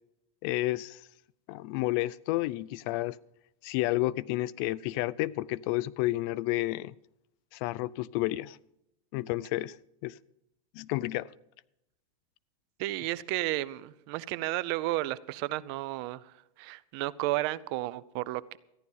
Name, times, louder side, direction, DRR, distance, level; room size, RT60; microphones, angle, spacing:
voice 1, 0.4-1.0 1.5-3.2 3.6-6.9 7.5-8.6 9.1-9.8 10.0-10.2 10.7-11.3, left 18 dB, 40° left, 21 dB, 0.4 m, -31 dB
voice 2, 12.8-16.2 16.6-18.6, right 17 dB, 45° right, 19 dB, 0.5 m, -32 dB
14.5 x 11.0 x 5.6 m, 0.85 s
supercardioid pair, 150°, 18 cm